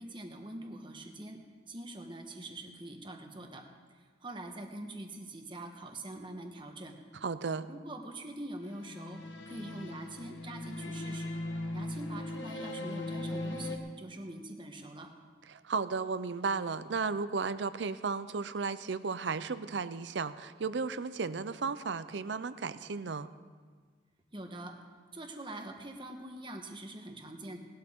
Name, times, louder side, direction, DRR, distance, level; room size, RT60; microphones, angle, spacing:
voice 1, 0.0-1.4 1.7-3.6 4.0-7.0 7.7-11.3 11.7-15.1 24.3-24.7 25.1-27.6, right 1 dB, 25° right, 3 dB, 1.2 m, -44 dB
voice 2, 7.2-7.7 15.5-23.3, right 4 dB, 70° right, 14 dB, 0.6 m, -34 dB
sound 1, 8.7-13.8, left 1 dB, 75° left, 1.2 m, -39 dB
19.0 x 12.0 x 3.7 m, 1.5 s
head